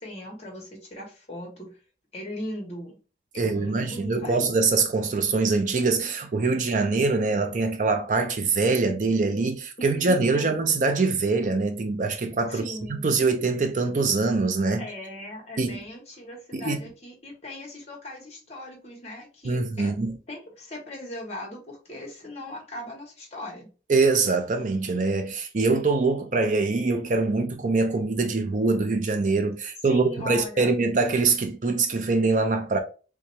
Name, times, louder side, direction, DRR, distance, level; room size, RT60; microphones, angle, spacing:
voice 1, 0.0-1.8 2.1-3.0 3.3-4.5 9.8-10.1 10.3-10.6 12.5-13.2 14.8-19.9 20.3-23.7 29.8-30.7, left 1 dB, 35° left, 1.3 m, -39 dB
voice 2, 3.4-12.7 13.0-14.8 15.6-15.8 16.5-16.8 19.4-20.2 23.9-32.8, right 3 dB, 45° right, 0.4 m, -24 dB
3.4 x 2.8 x 3.1 m
head